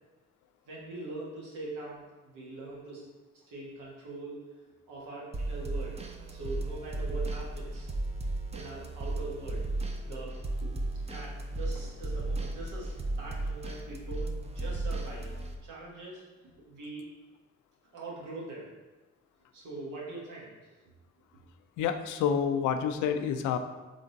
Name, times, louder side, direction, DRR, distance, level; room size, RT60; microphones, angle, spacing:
voice 1, 0.7-3.0 3.5-4.4 4.9-6.0 6.3-7.9 8.5-9.7 10.0-10.8 11.0-16.2 16.7-17.0 17.9-18.7 19.5-20.7, right 2 dB, 80° right, -4 dB, 1.4 m, -42 dB
sound 1, 5.3-15.6, right 2 dB, 20° right, 0.5 m, -35 dB
voice 2, 21.8-23.6, left 7 dB, 80° left, 7 dB, 0.5 m, -28 dB
3.8 x 3.4 x 3.9 m, 1.2 s
cardioid pair, 90°, 30 cm